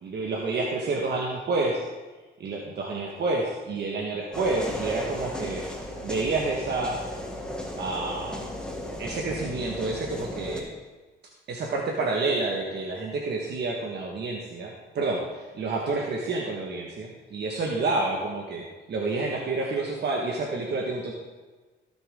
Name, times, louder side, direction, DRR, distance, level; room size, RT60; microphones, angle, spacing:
voice 1, 0.0-1.8 2.4-5.6 6.0-6.9 7.8-8.4 9.0-10.7 11.5-18.6 18.9-21.1, right 3 dB, 60° right, -1 dB, 1.7 m, -29 dB
sound 1, 4.3-10.6, equal, 5° left, 2.1 m, -35 dB
17.0 x 7.0 x 3.8 m, 1.3 s
cardioid pair, 90°, 20 cm